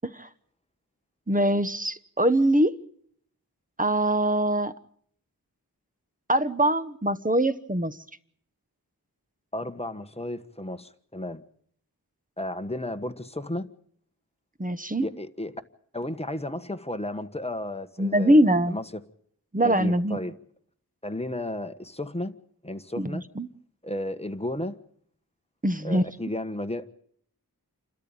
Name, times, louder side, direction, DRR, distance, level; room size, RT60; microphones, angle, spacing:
voice 1, 1.3-2.8 3.8-4.7 6.3-8.0 14.6-15.1 18.0-18.8 19.5-20.2 23.0-23.5 25.6-26.0, right 1 dB, 20° right, 1.1 m, -23 dB
voice 2, 9.5-11.4 12.4-13.7 15.0-15.6 15.9-18.8 19.6-20.3 21.0-22.3 22.6-23.2 23.8-24.8 25.8-26.9, left 1 dB, 15° left, 1.4 m, -33 dB
28.5 x 13.0 x 8.8 m
wide cardioid pair, 45°, 39 cm